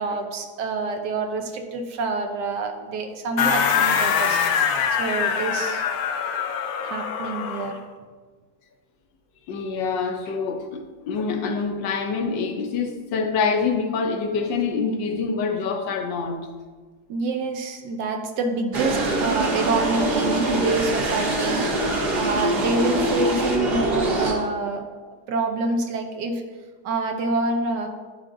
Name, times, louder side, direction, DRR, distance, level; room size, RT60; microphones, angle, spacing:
voice 1, 0.0-4.4 5.0-5.8 6.8-7.8 17.1-21.7 22.1-24.8 25.3-26.4 26.8-27.9, right 3 dB, 75° right, 5 dB, 1.3 m, -27 dB
sound 1, 3.4-7.8, left 7 dB, 70° left, 0.9 m, -23 dB
voice 2, 9.5-16.5, left 5 dB, 85° left, 5 dB, 1.5 m, -26 dB
sound 2, 18.7-24.3, right 2 dB, 40° right, 1.0 m, -23 dB
10.5 x 5.0 x 2.6 m, 1.4 s
omnidirectional pair, 1.9 m